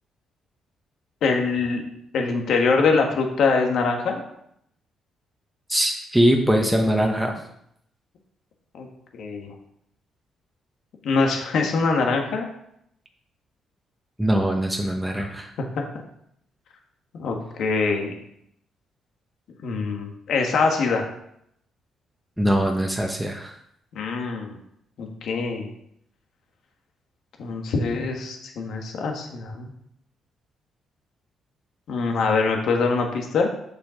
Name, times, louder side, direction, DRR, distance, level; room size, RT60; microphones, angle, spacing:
voice 1, 1.2-1.8 2.1-4.2 8.7-8.9 9.1-9.5 11.0-12.5 15.2-15.3 17.1-18.1 19.6-21.1 23.9-24.6 25.0-25.7 27.4-29.7 31.9-33.5, left 4 dB, 70° left, 2 dB, 1.7 m, -23 dB
voice 2, 5.7-7.3 14.2-15.5 22.4-23.5, equal, 5° right, 1 dB, 1.1 m, -22 dB
6.9 x 5.7 x 5.1 m, 0.74 s
cardioid pair, 90°, 0 cm